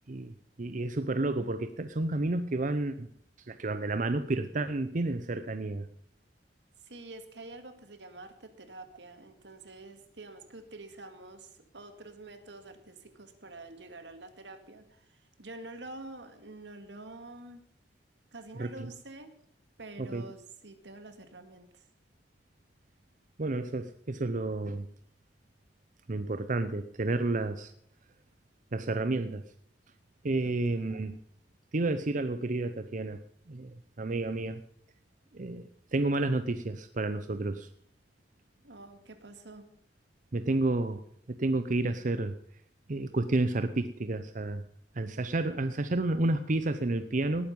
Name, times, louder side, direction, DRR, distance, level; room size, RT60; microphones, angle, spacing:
voice 1, 0.1-3.1 3.4-5.9 18.5-18.9 20.0-20.2 23.4-24.9 26.1-27.7 28.7-29.4 30.2-31.2 31.7-33.2 33.5-34.6 35.3-37.7 40.3-41.0 41.3-42.3 42.9-44.6 44.9-47.5, right 2 dB, 50° right, 10 dB, 0.7 m, -31 dB
voice 2, 6.8-17.6 18.3-19.3 19.8-21.8 30.4-30.9 38.6-39.7, right 2 dB, 85° right, 8 dB, 2.1 m, -47 dB
18.5 x 9.4 x 5.4 m, 0.68 s
head